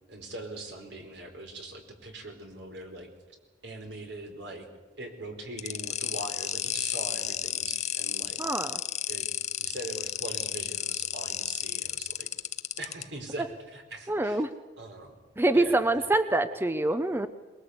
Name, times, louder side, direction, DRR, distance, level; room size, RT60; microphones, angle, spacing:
voice 1, 0.1-3.1 3.6-4.7 5.0-8.4 9.1-9.3 9.6-12.3 12.8-14.4 14.8-15.1 15.5-16.0, right 1 dB, 75° right, 4 dB, 4.5 m, -41 dB
sound 1, 5.6-13.0, left 11 dB, 40° left, 0.7 m, -32 dB
voice 2, 8.4-8.8 14.1-14.5 15.4-17.3, right 2 dB, 15° right, 11 dB, 0.7 m, -25 dB
22.5 x 21.5 x 8.1 m, 1.3 s
head